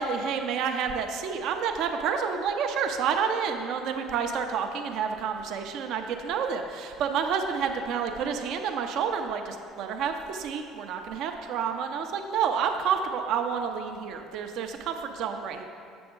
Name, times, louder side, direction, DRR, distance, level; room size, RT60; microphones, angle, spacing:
voice 1, 0.0-15.7, right 6 dB, 65° right, 4 dB, 0.5 m, -29 dB
7.0 x 6.8 x 3.7 m, 2.5 s
supercardioid pair, 85°, 0 cm